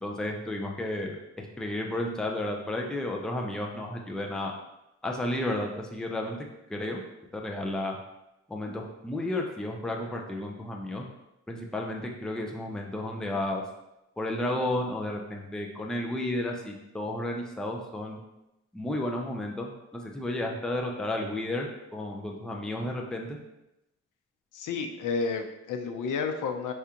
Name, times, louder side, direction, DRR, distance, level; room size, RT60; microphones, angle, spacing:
voice 1, 0.0-4.5 5.0-6.4 6.7-7.0 7.3-8.0 8.5-11.0 11.5-13.6 14.2-18.2 18.7-23.4, left 1 dB, ahead, 0 dB, 0.4 m, -32 dB
voice 2, 24.5-26.7, left 5 dB, 85° left, 5 dB, 0.6 m, -31 dB
4.8 x 3.6 x 2.8 m, 0.90 s
wide cardioid pair, 145°, 30 cm